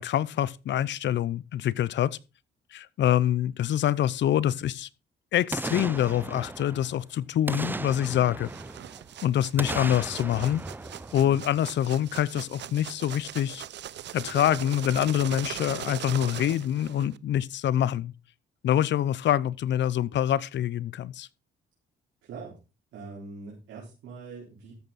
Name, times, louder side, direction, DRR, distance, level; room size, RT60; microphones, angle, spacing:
voice 1, 0.0-2.2 2.7-4.9 5.3-8.5 9.2-10.6 11.1-13.6 14.1-18.1 18.6-21.3, left 11 dB, 65° left, 0.7 m, -25 dB
Boom, 5.5-7.0 7.5-9.1 9.6-11.8 12.2-12.3, right 2 dB, 10° right, 0.5 m, -36 dB
sound 1, 8.4-17.2, right 12 dB, 60° right, 0.6 m, -40 dB
voice 2, 22.2-22.6 22.9-24.7, right 4 dB, 80° right, 4.2 m, -42 dB
13.5 x 8.0 x 4.1 m
cardioid pair, 90°, 20 cm